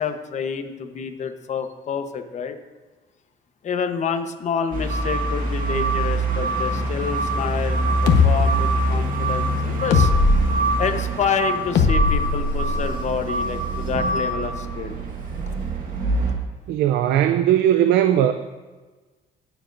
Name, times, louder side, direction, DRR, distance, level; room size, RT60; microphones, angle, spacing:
voice 1, 0.0-2.5 3.6-10.1 10.8-15.0, left 6 dB, 45° left, 7 dB, 1.0 m, -28 dB
sound 1, 4.7-16.3, right 2 dB, 55° right, 1.8 m, -24 dB
sound 2, 8.1-8.3 9.9-10.4 11.8-12.9, left 4 dB, 75° left, 1.1 m, -18 dB
voice 2, 16.7-18.3, right 11 dB, 80° right, 8 dB, 0.5 m, -18 dB
21.0 x 7.1 x 2.6 m, 1.3 s
cardioid pair, 110°, 17 cm